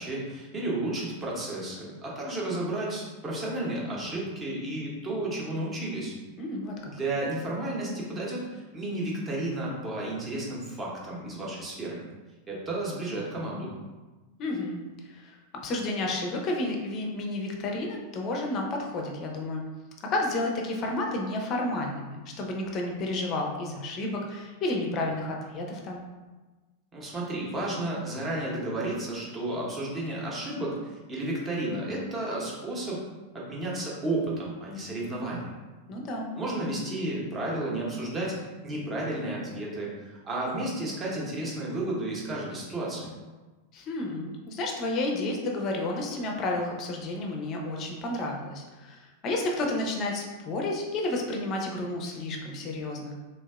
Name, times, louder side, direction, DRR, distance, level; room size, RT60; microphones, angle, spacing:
voice 1, 0.0-6.1 6.9-12.0 12.5-13.7 26.9-33.0 33.3-35.5 36.4-43.1, right 1 dB, 20° right, -4 dB, 0.8 m, -32 dB
voice 2, 6.4-6.9 14.4-19.6 20.0-26.0 35.9-36.3 43.7-53.2, left 2 dB, 35° left, 1 dB, 0.5 m, -31 dB
3.3 x 2.7 x 2.3 m, 1.2 s
figure-of-eight pair, 90°, 0 cm